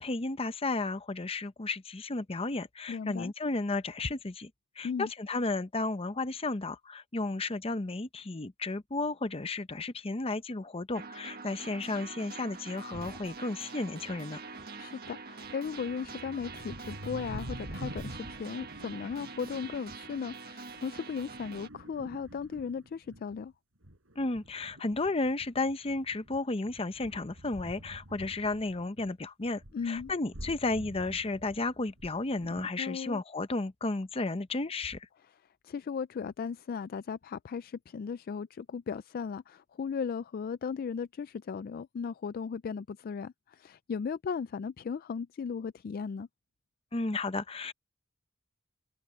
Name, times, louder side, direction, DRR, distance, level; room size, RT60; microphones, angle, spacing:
voice 1, 0.0-4.5 4.8-14.4 24.2-35.1 46.9-47.7, left 3 dB, 30° left, 0.8 m, -33 dB
voice 2, 2.9-3.3 4.8-5.1 14.8-23.5 29.7-30.1 32.8-33.2 35.6-46.3, left 6 dB, 45° left, 0.3 m, -36 dB
sound 1, 10.9-21.7, right 4 dB, 50° right, 1.5 m, -45 dB
sound 2, 12.9-13.4 14.0-14.7 15.0-23.4 23.8-29.1 29.4-32.7, equal, 90° right, 6.1 m, -47 dB
head